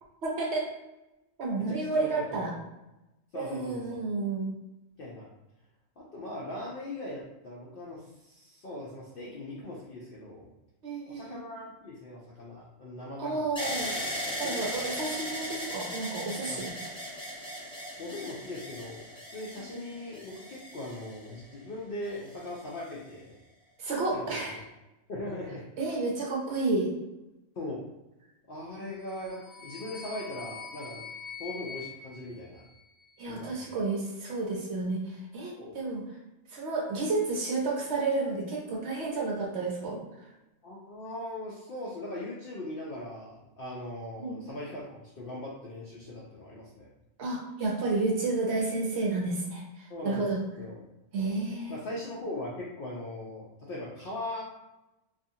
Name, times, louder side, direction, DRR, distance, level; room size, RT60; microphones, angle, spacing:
voice 1, 0.2-0.7 1.4-2.5 3.3-4.5 10.8-11.4 13.2-13.9 14.4-16.7 19.7-19.8 23.8-24.5 25.8-26.9 33.2-36.0 36.5-40.0 44.2-44.4 47.2-50.4 51.1-51.7, right 3 dB, 65° right, -2 dB, 0.8 m, -31 dB
voice 2, 1.6-2.6 3.3-4.0 5.0-5.3 6.0-10.5 11.1-13.5 14.2-14.8 16.5-16.7 18.0-23.4 24.1-24.6 25.1-25.6 27.6-27.8 28.5-31.0 31.4-32.6 33.3-33.8 35.5-35.7 40.6-46.9 49.9-50.3 50.6-50.8 51.7-54.4, left 1 dB, 65° left, -5 dB, 0.5 m, -40 dB
sound 1, 13.6-21.6 22.3-22.9, equal, 5° left, 0.4 m, -37 dB
sound 2, 28.9-33.2, left 5 dB, 85° left, 1.0 m, -45 dB
2.5 x 2.4 x 2.6 m, 0.97 s
omnidirectional pair, 1.4 m